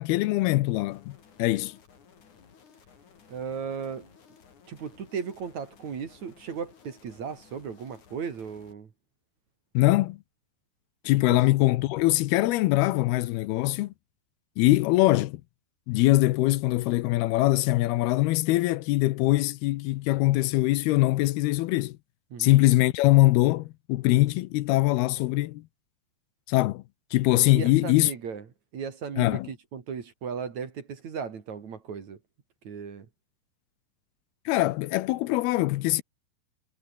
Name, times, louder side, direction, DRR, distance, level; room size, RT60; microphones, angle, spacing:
voice 1, 0.0-1.8 9.7-10.2 11.0-13.9 14.6-15.4 15.9-22.0 22.4-25.6 26.5-26.8 27.1-28.1 29.2-29.5 34.5-36.0, left 18 dB, 80° left, 2.6 m, -23 dB
sound 1, 0.9-8.7, left 6 dB, 50° left, 4.7 m, -56 dB
voice 2, 3.3-4.1 4.7-8.9 11.3-11.5 22.3-22.6 27.5-28.4 28.7-32.2 32.6-33.1, right 6 dB, 50° right, 3.6 m, -36 dB
omnidirectional pair, 4.6 m